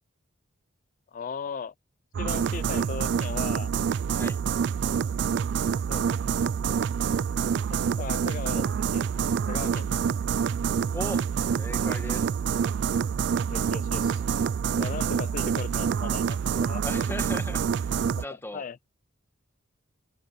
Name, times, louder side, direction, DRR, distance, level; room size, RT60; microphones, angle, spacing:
voice 1, 1.1-1.7 2.2-3.7 5.9-6.1 7.7-8.6 8.9-10.0 13.5-14.2 14.8-16.8 18.3-18.8, left 6 dB, 40° left, 0.3 m, -37 dB
sound 1, 2.1-18.3, right 7 dB, 55° right, 0.3 m, -27 dB
voice 2, 10.9-11.3 11.6-12.3 16.8-18.7, left 1 dB, 10° left, 1.6 m, -38 dB
head